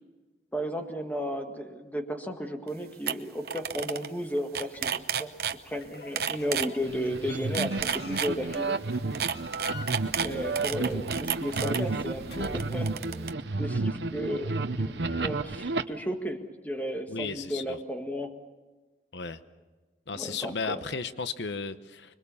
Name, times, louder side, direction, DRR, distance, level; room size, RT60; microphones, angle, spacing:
voice 1, 0.5-5.3 5.6-8.8 10.2-18.3 20.2-20.7, equal, 10° left, 5 dB, 1.8 m, -34 dB
sound 1, 2.7-2.8 3.1-3.2 3.4-4.1 4.4-5.6 6.2-6.7 7.4-8.6 9.1-11.8 12.4-13.3, right 7 dB, 60° right, 0.8 m, -30 dB
sound 2, 4.7-12.8, left 2 dB, 70° left, 1.7 m, -47 dB
sound 3, 6.8-15.8, right 3 dB, 80° right, 0.9 m, -32 dB
voice 2, 17.1-17.8 19.1-19.4 20.1-22.2, left 5 dB, 85° left, 11 dB, 1.0 m, -34 dB
26.0 x 22.5 x 7.1 m, 1.2 s
head